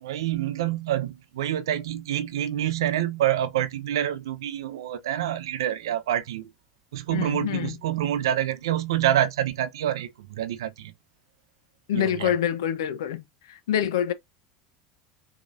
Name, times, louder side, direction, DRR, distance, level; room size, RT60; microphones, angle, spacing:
voice 1, 0.0-6.5 6.9-10.9 11.9-12.3, right 11 dB, 85° right, 0.8 m, -27 dB
voice 2, 7.1-7.8 11.9-14.1, left 10 dB, 80° left, 0.9 m, -26 dB
5.6 x 3.0 x 2.6 m
hypercardioid pair, 90°, 2 cm